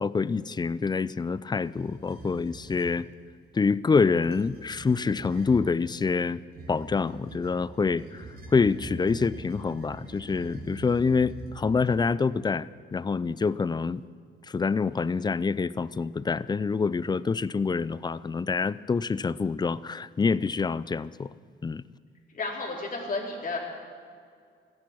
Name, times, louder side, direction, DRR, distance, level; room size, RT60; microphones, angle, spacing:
voice 1, 0.0-3.1 3.5-6.4 6.7-8.2 8.5-14.0 14.5-21.3 21.6-21.8, left 4 dB, 20° left, 19 dB, 0.4 m, -26 dB
sound 1, 1.7-3.0 4.1-5.7 6.5-12.0, right 2 dB, 50° right, 3.2 m, -44 dB
voice 2, 22.3-23.6, left 3 dB, 45° left, -1 dB, 4.0 m, -32 dB
15.0 x 10.5 x 8.9 m, 2.1 s
cardioid pair, 90°, 20 cm